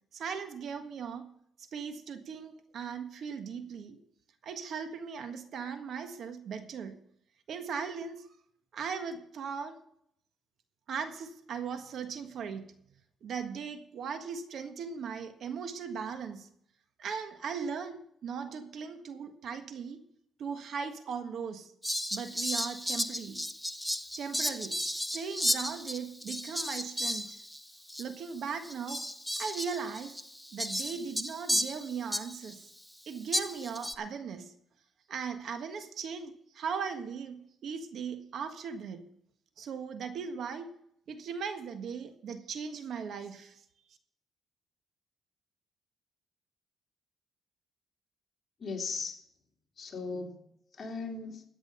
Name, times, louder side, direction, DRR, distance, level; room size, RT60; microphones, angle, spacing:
voice 1, 0.1-1.3 1.6-4.0 4.4-7.0 7.5-8.3 8.7-9.7 10.9-12.7 13.2-16.5 17.0-20.0 20.4-21.7 22.1-23.4 24.2-27.4 28.0-29.0 29.4-30.1 30.5-32.7 33.1-34.5 35.1-39.0 39.6-40.7 41.1-43.6, right 6 dB, 65° right, 8 dB, 1.5 m, -38 dB
Fowl, 21.8-27.6 27.9-28.0 28.6-32.5 33.3-33.9, equal, ahead, 0.7 m, -34 dB
voice 2, 48.6-49.2 49.8-50.4 50.7-51.4, left 4 dB, 40° left, 0 dB, 3.3 m, -37 dB
14.0 x 8.8 x 5.6 m, 0.70 s
cardioid pair, 90°, 0 cm